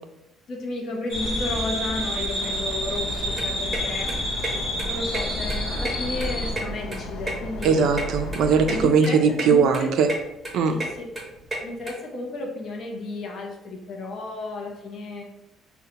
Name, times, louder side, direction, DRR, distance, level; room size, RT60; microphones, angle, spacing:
voice 1, 0.5-4.1 4.8-7.9 8.7-9.9 10.7-11.1 11.6-15.2, left 2 dB, 45° left, 0 dB, 0.6 m, -33 dB
sound 1, 1.1-6.5, equal, 25° left, 1.3 m, -28 dB
sound 2, 2.4-8.8, equal, 90° left, 0.5 m, -36 dB
sound 3, 3.4-11.9, right 1 dB, 10° right, 0.8 m, -33 dB
voice 2, 7.6-10.1 10.5-10.7, right 5 dB, 60° right, 6 dB, 0.4 m, -20 dB
5.4 x 2.1 x 2.8 m, 0.88 s
cardioid pair, 170°, 0 cm